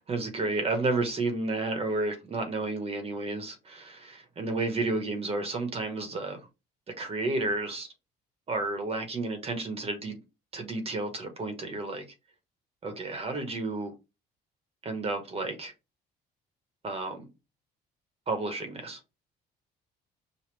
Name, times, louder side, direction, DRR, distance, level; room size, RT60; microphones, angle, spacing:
voice 1, 0.1-6.4 7.0-7.9 8.5-10.2 10.5-12.0 12.8-13.9 14.8-15.7 16.8-17.2 18.3-19.0, right 2 dB, 35° right, 1.1 m, -31 dB
5.1 x 2.4 x 3.2 m
cardioid pair, 110°, 17 cm